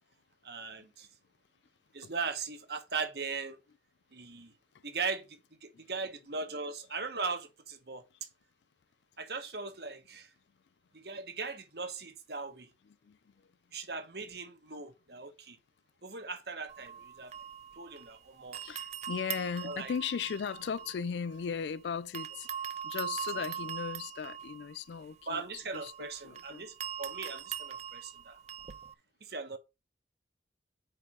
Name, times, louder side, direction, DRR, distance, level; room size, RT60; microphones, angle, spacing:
voice 1, 0.4-1.1 1.9-3.6 4.1-4.5 4.8-8.3 9.2-10.3 10.9-12.7 13.7-15.6 16.0-17.3 17.8-18.6 19.6-19.9 23.3-23.5 25.3-28.4 29.2-29.6, right 4 dB, 65° right, 1.2 m, -39 dB
voice 2, 12.9-13.5 18.6-22.5 22.8-26.7, left 6 dB, 75° left, 0.4 m, -37 dB
sound 1, 16.7-18.2 18.5-21.7 22.1-28.9, right 9 dB, 40° right, 0.4 m, -42 dB
4.8 x 4.8 x 6.2 m
head